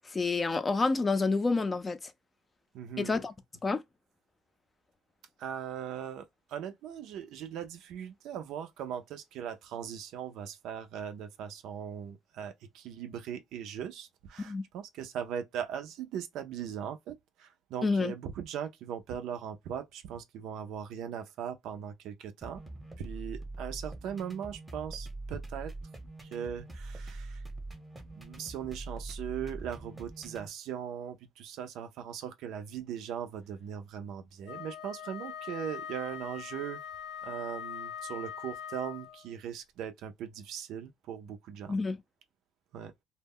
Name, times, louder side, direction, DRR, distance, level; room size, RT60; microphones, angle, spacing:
voice 1, 0.0-2.1 3.0-3.3 3.6-3.8 14.4-14.6 17.8-18.1 41.7-42.0, left 3 dB, 25° left, 0.4 m, -28 dB
voice 2, 2.7-3.1 5.4-22.6 23.0-25.7 26.2-27.4 28.1-36.8 37.2-41.7 42.7-42.9, right 8 dB, 75° right, 0.4 m, -39 dB
sound 1, 22.4-30.5, right 2 dB, 10° right, 0.8 m, -43 dB
Wind instrument woodwind instrument, 34.4-39.3, left 8 dB, 80° left, 0.8 m, -42 dB
2.1 x 2.0 x 3.5 m
cardioid pair, 95°, 0 cm